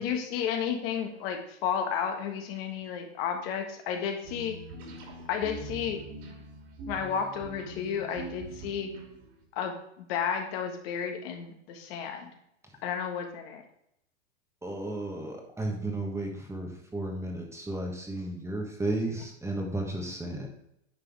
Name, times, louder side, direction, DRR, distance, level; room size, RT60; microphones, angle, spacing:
voice 1, 0.0-4.6 5.3-6.0 6.9-8.9 9.5-12.3 12.8-13.6, left 7 dB, 55° left, 4 dB, 1.6 m, -32 dB
sound 1, 4.2-9.4, right 1 dB, 50° right, 2.9 m, -43 dB
voice 2, 14.6-20.5, right 2 dB, 10° right, 1 dB, 1.3 m, -33 dB
9.6 x 5.3 x 3.5 m, 0.78 s
hypercardioid pair, 125°, 36 cm